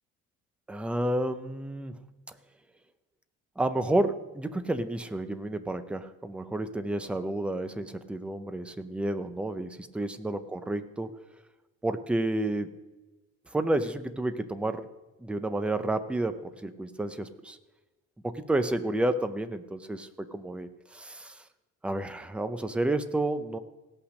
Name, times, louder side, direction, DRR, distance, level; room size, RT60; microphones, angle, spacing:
voice 1, 0.7-2.0 3.6-11.1 11.8-12.7 13.5-14.9 15.2-17.6 18.2-21.4 21.8-23.6, right 1 dB, 5° right, 10 dB, 0.4 m, -30 dB
17.5 x 5.8 x 6.4 m, 1.2 s
cardioid pair, 170°, 31 cm